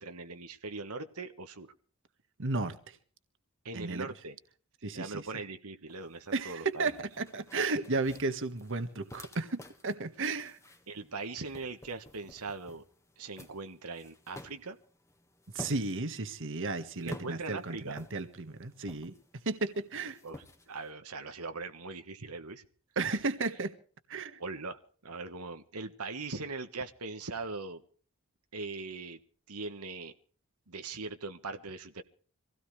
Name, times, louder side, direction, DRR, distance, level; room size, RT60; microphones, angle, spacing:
voice 1, 0.0-1.7 3.6-4.4 4.9-6.9 10.9-12.8 13.2-14.8 17.0-18.0 20.2-22.6 24.4-27.8 28.5-29.2 29.5-30.1 30.7-32.0, right 3 dB, 90° right, 1.5 m, -40 dB
voice 2, 2.4-3.0 3.7-4.1 4.8-5.2 6.3-10.6 15.5-19.1 19.4-20.2 22.9-23.7 24.1-24.4, right 3 dB, 60° right, 1.6 m, -34 dB
sound 1, 5.9-20.9, left 1 dB, 15° left, 1.7 m, -52 dB
25.5 x 16.5 x 3.3 m
head